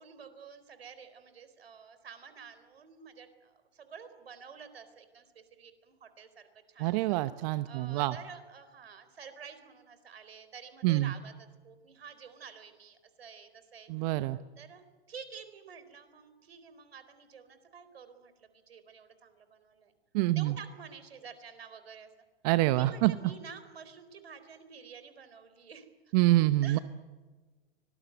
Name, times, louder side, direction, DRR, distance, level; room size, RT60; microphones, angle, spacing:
voice 1, 0.0-7.0 7.4-11.3 11.6-14.1 14.6-19.9 20.3-22.1 22.7-25.9 26.6-26.8, right 6 dB, 75° right, 11 dB, 4.2 m, -50 dB
voice 2, 6.8-8.2 10.8-11.1 13.9-14.4 20.1-20.5 22.4-23.1 26.1-26.8, right 17 dB, 40° right, 13 dB, 1.0 m, -26 dB
25.0 x 19.5 x 9.3 m, 1.3 s
hypercardioid pair, 115°, 31 cm